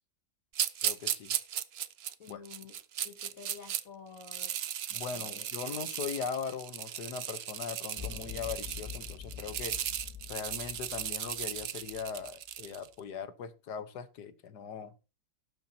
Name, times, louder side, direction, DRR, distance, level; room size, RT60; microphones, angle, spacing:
sound 1, 0.5-3.8 4.2-12.9, right 10 dB, 75° right, 0.5 m, -36 dB
voice 1, 0.8-1.3 2.3-2.4 4.9-9.7 10.3-14.9, left 6 dB, 70° left, 12 dB, 1.5 m, -40 dB
voice 2, 2.2-2.7 3.0-4.5 5.1-5.8, left 5 dB, 50° left, 7 dB, 1.8 m, -50 dB
sound 2, 8.0-12.3, left 8 dB, 10° right, 4.1 m, -45 dB
18.0 x 7.3 x 2.8 m, 0.30 s
omnidirectional pair, 1.9 m